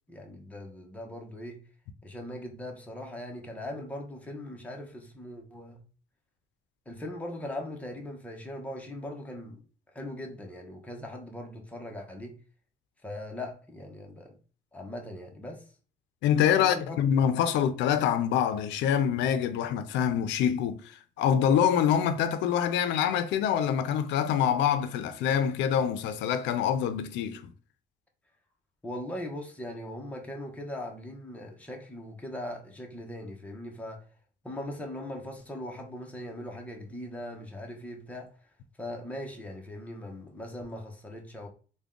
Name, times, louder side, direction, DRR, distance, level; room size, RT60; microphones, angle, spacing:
voice 1, 0.1-1.6 2.0-5.8 6.9-12.4 13.0-14.3 14.7-15.7 16.6-17.0 28.8-34.0 34.4-38.3 38.8-41.5, left 1 dB, 10° left, 0.8 m, -40 dB
voice 2, 16.2-27.5, left 9 dB, 90° left, 0.5 m, -25 dB
3.5 x 2.2 x 3.6 m
cardioid pair, 130°, 18 cm